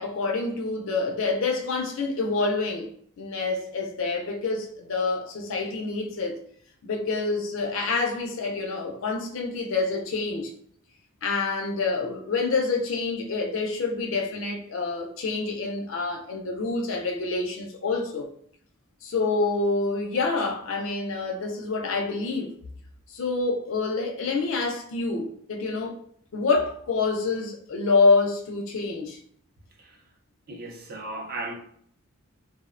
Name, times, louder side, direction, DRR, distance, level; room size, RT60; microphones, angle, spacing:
voice 1, 0.0-2.9 3.2-6.4 6.8-10.5 11.2-18.3 19.0-22.5 23.1-25.9 26.3-29.2, left 3 dB, 60° left, 0.4 m, -27 dB
voice 2, 30.5-31.5, right 2 dB, 45° right, 0.5 m, -36 dB
2.5 x 2.0 x 2.4 m
head